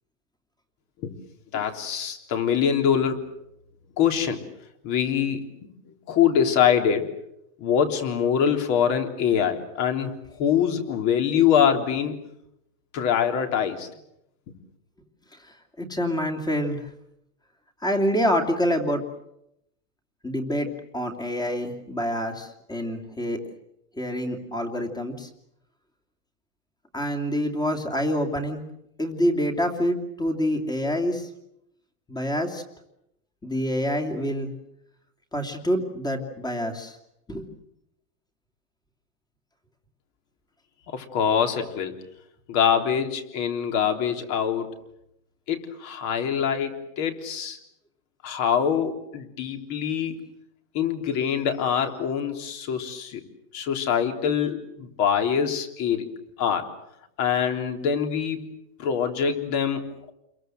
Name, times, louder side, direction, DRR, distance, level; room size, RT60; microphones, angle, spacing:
voice 1, 1.5-3.2 4.0-4.5 4.8-5.5 6.1-7.1 7.6-12.2 12.9-13.9 40.9-41.9 42.5-44.7 45.5-47.6 48.2-50.2 50.7-53.2 53.5-56.1 56.4-56.7 57.2-58.4 58.8-60.1, left 8 dB, 35° left, 6 dB, 3.5 m, -24 dB
voice 2, 15.4-16.9 17.8-19.1 20.2-23.4 24.0-25.3 26.9-28.6 29.0-31.3 32.1-32.6 33.4-34.5 35.3-37.0 37.3-37.5, equal, 10° left, 5 dB, 2.8 m, -27 dB
29.5 x 22.5 x 7.9 m, 0.80 s
supercardioid pair, 150°, 46 cm